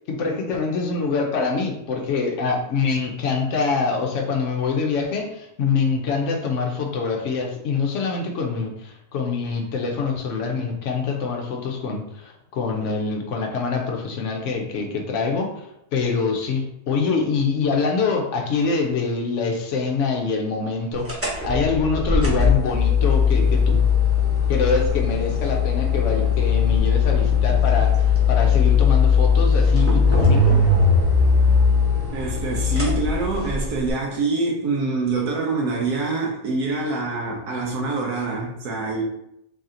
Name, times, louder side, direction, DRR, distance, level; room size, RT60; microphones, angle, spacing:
voice 1, 0.1-15.5 15.9-23.8 24.5-30.6, left 4 dB, 65° left, 1 dB, 0.8 m, -25 dB
sound 1, 21.0-33.9, left 5 dB, 15° right, 0.5 m, -19 dB
voice 2, 32.1-39.0, right 3 dB, 75° right, -1 dB, 1.2 m, -25 dB
3.2 x 2.8 x 3.7 m, 0.80 s
omnidirectional pair, 1.7 m